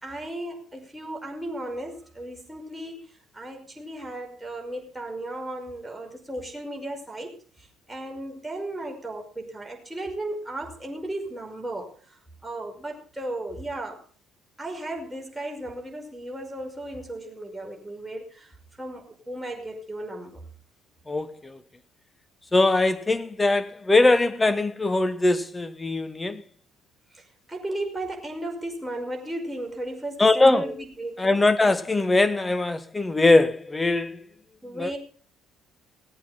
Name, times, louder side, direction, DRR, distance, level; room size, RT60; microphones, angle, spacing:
voice 1, 0.0-14.0 14.6-20.5 27.1-31.4 34.6-35.0, right 1 dB, 10° right, 5.5 m, -35 dB
voice 2, 21.1-21.6 22.5-26.4 30.2-30.6 31.2-34.2 34.8-34.9, left 2 dB, 20° left, 1.3 m, -21 dB
19.0 x 8.6 x 5.7 m
figure-of-eight pair, 50°, 0 cm